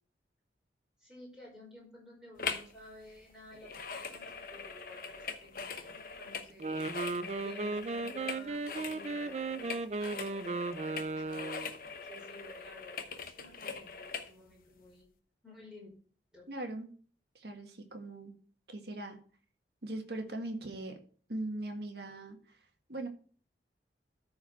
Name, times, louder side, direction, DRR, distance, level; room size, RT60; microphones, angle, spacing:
voice 1, 1.0-6.9 7.4-11.6 12.0-13.0 13.4-15.1 15.4-15.9 16.3-16.5, left 1 dB, 5° right, -4 dB, 4.9 m, -53 dB
sound 1, 2.4-2.7 3.0-14.3 14.8-14.9, left 5 dB, 50° left, 1.0 m, -42 dB
Wind instrument woodwind instrument, 6.5-11.8, right 3 dB, 35° right, 0.4 m, -36 dB
voice 2, 16.5-16.9 17.3-18.4 18.7-19.2 19.8-21.0 21.3-22.4 22.9-23.1, right 1 dB, 65° right, 4 dB, 1.7 m, -40 dB
13.5 x 4.8 x 4.4 m, 0.42 s
head